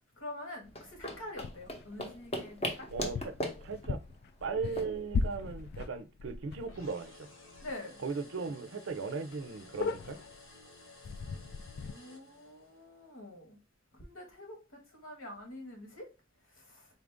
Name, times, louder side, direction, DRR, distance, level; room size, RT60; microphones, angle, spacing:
voice 1, 0.2-2.9 7.6-8.0 11.9-13.6 14.0-16.1 16.5-16.9, left 1 dB, 85° left, 1.5 m, -46 dB
sound 1, 0.6-5.8, left 1 dB, 30° left, 0.7 m, -40 dB
sound 2, 1.4-1.9 2.6-7.1 7.5-7.7 8.0-8.1 8.6-8.7 8.9-9.0 9.3-10.4 11.0-11.9, left 4 dB, 55° left, 0.3 m, -38 dB
voice 2, 2.9-3.4 3.6-4.0 4.4-7.3 8.0-10.2, right 4 dB, 65° right, 0.5 m, -37 dB
sound 3, 6.7-12.9, left 2 dB, 70° left, 1.1 m, -55 dB
4.1 x 2.5 x 3.5 m
head